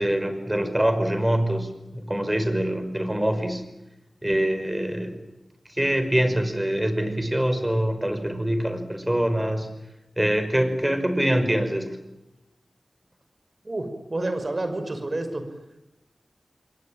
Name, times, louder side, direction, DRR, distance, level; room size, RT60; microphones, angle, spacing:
voice 1, 0.0-3.6 4.2-5.2 5.7-9.7 10.2-11.9, right 1 dB, 15° right, 9 dB, 5.6 m, -24 dB
voice 2, 13.6-15.4, right 2 dB, 40° right, 8 dB, 5.7 m, -29 dB
28.5 x 22.5 x 9.0 m, 0.94 s
wide cardioid pair, 55°, 0 cm